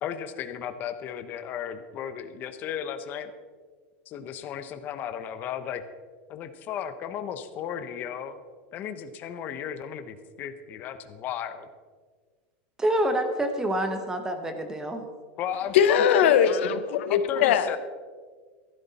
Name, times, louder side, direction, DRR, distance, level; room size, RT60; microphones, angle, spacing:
voice 1, 0.0-3.3 4.1-5.8 6.3-8.4 8.7-11.7 15.4-16.4 17.1-17.8, left 9 dB, 30° left, 9 dB, 0.8 m, -34 dB
voice 2, 12.8-15.0, right 1 dB, 10° right, 7 dB, 1.1 m, -27 dB
voice 3, 15.7-17.8, left 8 dB, 85° left, 10 dB, 1.1 m, -21 dB
14.5 x 12.5 x 4.1 m, 1.5 s
supercardioid pair, 175°, 6 cm